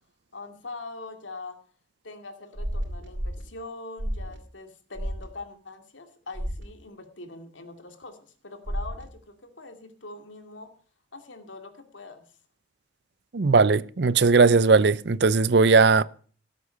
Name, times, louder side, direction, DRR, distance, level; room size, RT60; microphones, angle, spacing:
voice 1, 0.3-1.6 2.0-10.7 11.1-12.2, left 3 dB, 90° left, 2.5 m, -42 dB
sound 1, 2.5-3.4 4.0-4.4 4.9-5.2 6.3-6.6 8.7-9.0, equal, 85° right, 2.7 m, -31 dB
voice 2, 13.3-16.0, right 4 dB, 60° right, 0.6 m, -18 dB
17.5 x 8.3 x 6.5 m
head